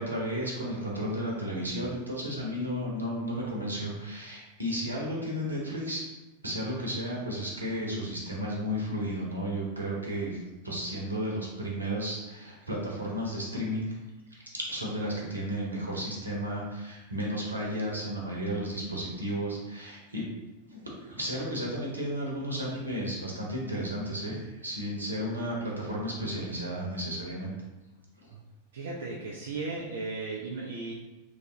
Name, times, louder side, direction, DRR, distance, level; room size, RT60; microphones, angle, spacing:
voice 1, 0.0-6.0 6.4-13.9 14.3-20.2 20.7-27.5 28.2-28.3, equal, 80° right, -3 dB, 0.7 m, -33 dB
voice 2, 28.7-30.9, right 3 dB, 60° right, -3 dB, 0.4 m, -35 dB
3.1 x 2.4 x 2.7 m, 1.0 s
figure-of-eight pair, 90°, 0 cm